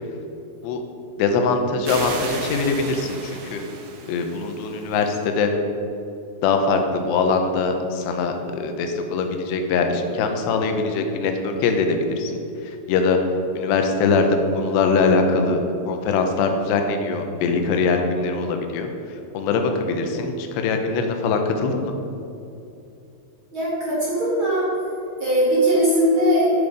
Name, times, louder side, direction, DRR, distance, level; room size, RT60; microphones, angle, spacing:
voice 1, 1.2-3.6 4.1-5.5 6.4-13.2 13.6-18.9 19.3-21.9, left 4 dB, 80° left, 5 dB, 3.0 m, -22 dB
sound 1, 1.8-5.2, right 3 dB, 85° right, 3.3 m, -34 dB
voice 2, 23.5-24.7 25.2-26.7, equal, 45° right, -7 dB, 1.8 m, -19 dB
8.8 x 7.1 x 5.1 m, 2.7 s
omnidirectional pair, 4.9 m